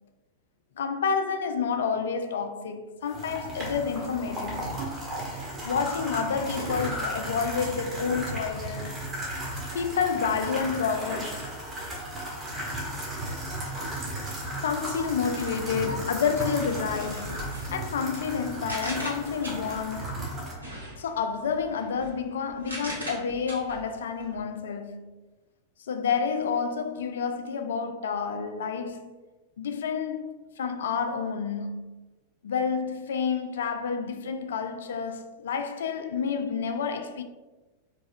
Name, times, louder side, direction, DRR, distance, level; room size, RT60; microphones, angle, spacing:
voice 1, 0.8-4.7 5.6-9.0 9.7-11.5 14.6-17.4 17.7-20.1 21.0-25.1 25.9-29.2 29.6-31.9 32.4-37.2, left 6 dB, 60° left, 0.4 m, -29 dB
sound 1, 3.1-20.5, right 1 dB, 20° right, 1.4 m, -35 dB
sound 2, 16.6-20.0 20.5-24.4, right 1 dB, 85° right, 1.3 m, -40 dB
4.7 x 4.0 x 2.5 m
figure-of-eight pair, 90°, 0 cm